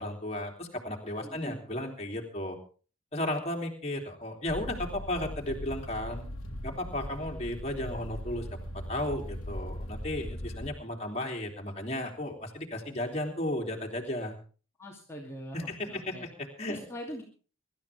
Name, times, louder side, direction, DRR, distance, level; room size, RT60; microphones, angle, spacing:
voice 1, 0.0-2.6 3.1-6.3 6.6-8.5 8.9-14.4 15.5-16.8, left 1 dB, 30° left, 1 dB, 3.2 m, -34 dB
voice 2, 1.2-1.6 14.8-16.3 16.6-17.2, equal, 10° left, -2 dB, 2.7 m, -42 dB
sound 1, 4.5-10.7, equal, 90° left, 1.8 m, -39 dB
24.5 x 13.0 x 3.6 m, 0.38 s
head